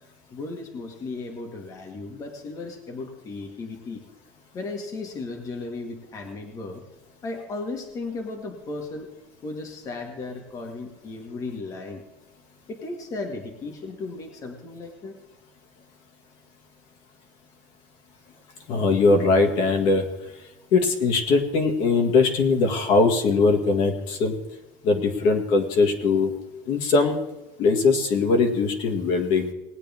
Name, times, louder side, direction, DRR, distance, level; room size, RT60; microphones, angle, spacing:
voice 1, 0.3-4.0 4.5-6.8 7.2-9.1 9.4-12.0 12.7-15.1, left 3 dB, 35° left, 3 dB, 1.7 m, -35 dB
voice 2, 18.7-20.0 20.7-24.3 24.8-26.3 26.7-27.2 27.6-29.5, left 3 dB, 60° left, 2 dB, 2.1 m, -21 dB
19.5 x 9.0 x 3.6 m, 0.98 s
cardioid pair, 135°, 10 cm